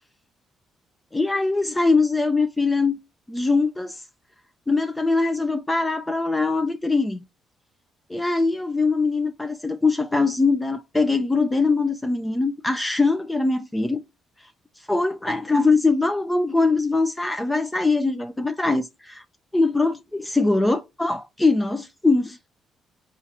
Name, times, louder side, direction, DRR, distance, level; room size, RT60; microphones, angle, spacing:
voice 1, 1.1-3.0 3.3-4.0 4.7-7.2 8.1-14.0 14.9-19.2 19.5-22.5, left 3 dB, 15° left, 0.4 m, -22 dB
4.4 x 2.5 x 4.1 m
cardioid pair, 90°, 0 cm